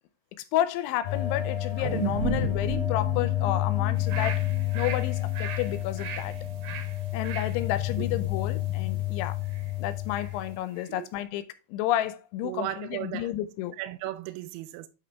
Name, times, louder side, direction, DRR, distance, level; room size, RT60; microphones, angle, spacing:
voice 1, 0.5-4.4 4.7-6.3 7.1-9.4 9.8-11.4 11.7-13.7, left 13 dB, 85° left, 3.0 m, -31 dB
sound 1, 1.0-10.6, left 15 dB, 65° left, 2.6 m, -30 dB
sound 2, 1.8-6.3 6.7-6.8, right 4 dB, 50° right, 1.9 m, -35 dB
sound 3, 3.9-10.4 10.8-10.9, right 6 dB, 65° right, 2.6 m, -42 dB
voice 2, 12.4-13.3 13.8-14.9, right 14 dB, 85° right, 2.8 m, -36 dB
8.3 x 5.1 x 3.4 m
omnidirectional pair, 5.4 m